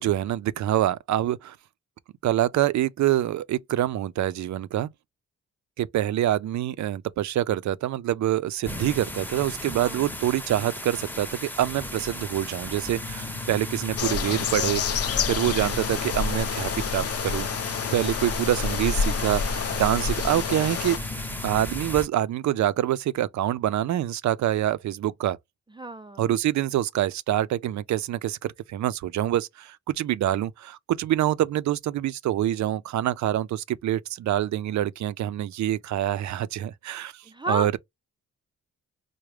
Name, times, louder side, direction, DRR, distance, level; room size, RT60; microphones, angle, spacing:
voice 1, 0.0-1.6 2.2-4.9 5.8-17.5 17.9-21.0 21.4-25.4 26.2-37.8, right 12 dB, 70° right, 0.5 m, -26 dB
sound 1, 8.6-22.1, left 1 dB, 5° left, 0.7 m, -36 dB
voice 2, 9.7-10.1 25.8-26.3 37.3-37.8, right 1 dB, 15° right, 0.4 m, -32 dB
sound 2, 12.9-21.6, left 4 dB, 70° left, 0.9 m, -38 dB
sound 3, 14.0-21.0, left 7 dB, 55° left, 0.5 m, -28 dB
4.7 x 2.1 x 3.2 m
cardioid pair, 80°, 29 cm